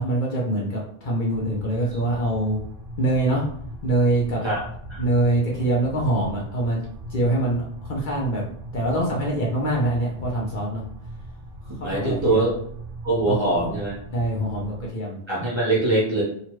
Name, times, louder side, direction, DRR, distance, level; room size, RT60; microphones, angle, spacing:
voice 1, 0.0-2.6 3.0-3.4 3.8-4.4 5.0-6.8 7.1-8.4 8.7-10.8 11.8-12.4 13.2-13.4 14.1-15.2, right 1 dB, 55° left, -4 dB, 0.8 m, -24 dB
sound 1, 1.3-14.9, right 1 dB, 60° right, 0.7 m, -39 dB
voice 2, 11.8-12.5 13.0-14.0 15.3-16.2, right 2 dB, 25° right, -7 dB, 1.1 m, -22 dB
2.8 x 2.4 x 3.0 m, 0.67 s
omnidirectional pair, 1.1 m